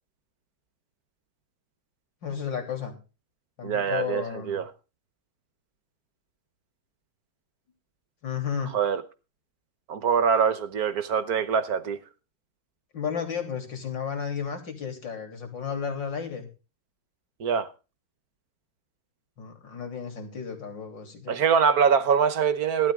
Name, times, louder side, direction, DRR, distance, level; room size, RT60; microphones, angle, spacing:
voice 1, 2.2-2.9 3.6-4.6 8.2-8.8 12.9-16.5 19.4-21.4, left 7 dB, 60° left, 3.9 m, -33 dB
voice 2, 3.6-4.7 8.7-9.0 9.9-12.0 17.4-17.7 21.3-22.9, right 6 dB, 55° right, 1.3 m, -23 dB
16.5 x 12.5 x 3.6 m
omnidirectional pair, 2.3 m